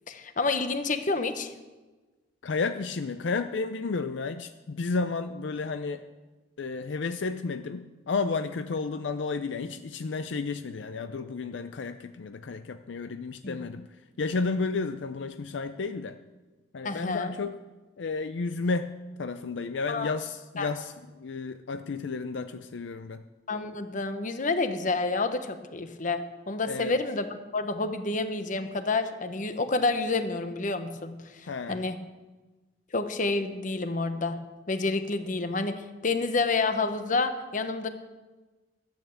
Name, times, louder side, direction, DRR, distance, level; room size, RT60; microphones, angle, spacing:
voice 1, 0.1-1.5 13.4-13.6 16.8-17.3 19.9-20.1 20.6-20.7 23.5-27.3 27.5-32.0 32.9-34.4 34.7-37.9, left 3 dB, 45° left, 9 dB, 0.9 m, -29 dB
voice 2, 2.4-6.0 6.6-13.9 14.2-16.2 16.7-17.5 18.0-18.9 19.2-23.2 26.7-27.0 31.5-31.8, left 4 dB, 70° left, 9 dB, 0.5 m, -32 dB
12.5 x 8.9 x 7.0 m, 1.2 s
head